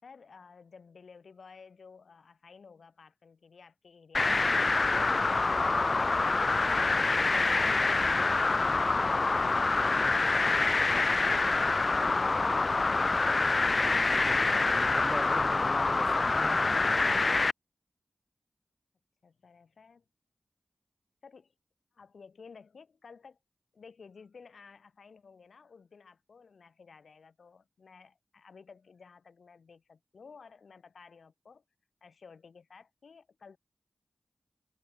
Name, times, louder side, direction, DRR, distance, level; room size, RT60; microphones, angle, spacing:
voice 1, 0.0-11.1 19.2-20.0 21.2-21.5 21.9-23.4 23.7-31.6 32.0-33.6, left 5 dB, 85° left, 5.1 m, -54 dB
sound 1, 4.1-17.5, left 3 dB, 55° left, 0.5 m, -26 dB
voice 2, 13.7-17.3, right 1 dB, 15° right, 4.0 m, -42 dB
cardioid pair, 50°, 0 cm